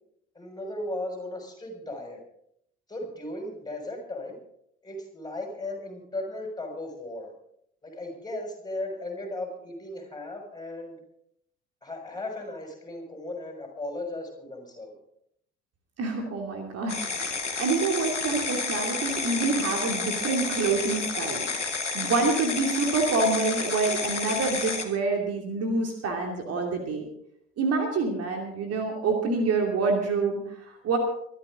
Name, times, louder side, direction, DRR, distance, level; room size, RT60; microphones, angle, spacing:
voice 1, 0.3-2.2 2.9-4.4 4.8-7.3 7.8-11.0 11.8-15.0, left 1 dB, 10° left, 2 dB, 6.1 m, -36 dB
voice 2, 16.0-21.5 21.9-27.0 27.6-31.0, right 3 dB, 45° right, 2 dB, 2.7 m, -27 dB
sound 1, 16.9-24.9, left 4 dB, 85° left, 1.4 m, -30 dB
23.5 x 12.5 x 3.8 m, 0.72 s
figure-of-eight pair, 60°, 35 cm